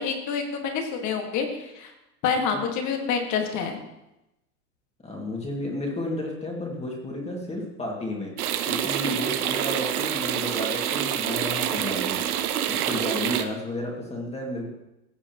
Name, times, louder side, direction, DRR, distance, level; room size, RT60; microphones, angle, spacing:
voice 1, 0.0-1.9 2.2-3.7, left 6 dB, 40° left, 3 dB, 1.8 m, -27 dB
voice 2, 5.0-12.2 12.7-14.7, left 1 dB, 15° left, -1 dB, 2.1 m, -32 dB
sound 1, 8.4-13.4, right 10 dB, 85° right, 0.9 m, -27 dB
16.0 x 7.0 x 3.0 m, 0.91 s
supercardioid pair, 120°, 43 cm